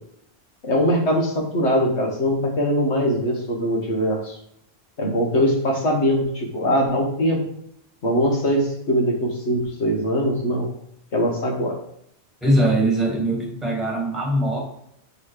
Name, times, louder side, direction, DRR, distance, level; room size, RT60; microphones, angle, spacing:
voice 1, 0.6-4.3 5.0-7.4 8.0-10.7 11.1-11.7, equal, 80° left, 0 dB, 1.7 m, -21 dB
voice 2, 12.4-14.6, right 1 dB, ahead, -2 dB, 1.8 m, -21 dB
5.5 x 4.1 x 4.9 m, 0.73 s
omnidirectional pair, 1.1 m